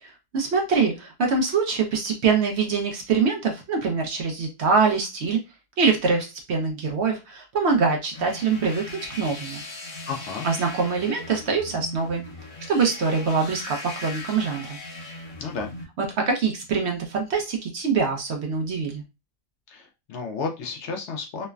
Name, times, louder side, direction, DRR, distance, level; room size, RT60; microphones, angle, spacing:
voice 1, 0.0-5.4 5.8-8.9 9.2-9.6 10.4-12.2 12.7-14.8 16.0-19.0, right 5 dB, 60° right, 2 dB, 0.8 m, -24 dB
sound 1, 8.1-15.8, left 2 dB, 35° left, 0.7 m, -39 dB
voice 2, 10.1-10.5 15.4-15.7 19.7-21.5, left 4 dB, 65° left, 2 dB, 0.8 m, -32 dB
3.1 x 2.0 x 2.3 m, 0.25 s
omnidirectional pair, 1.4 m